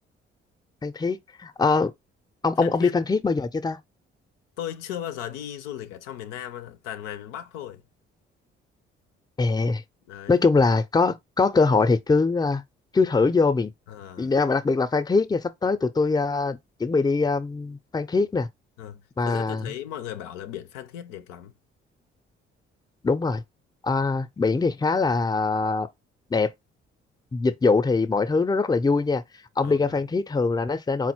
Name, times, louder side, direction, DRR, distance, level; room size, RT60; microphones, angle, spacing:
voice 1, 0.8-1.9 2.4-3.8 9.4-9.8 10.3-12.6 12.9-13.7 14.2-18.5 19.2-19.7 23.0-23.4 23.8-25.9 26.3-26.5 27.3-29.2 29.6-31.1, left 4 dB, 15° left, 0.5 m, -23 dB
voice 2, 2.6-3.0 4.6-7.8 10.1-10.4 13.9-14.3 18.8-21.5 29.6-30.0, left 11 dB, 80° left, 0.5 m, -37 dB
4.1 x 2.1 x 4.3 m
hypercardioid pair, 45°, 29 cm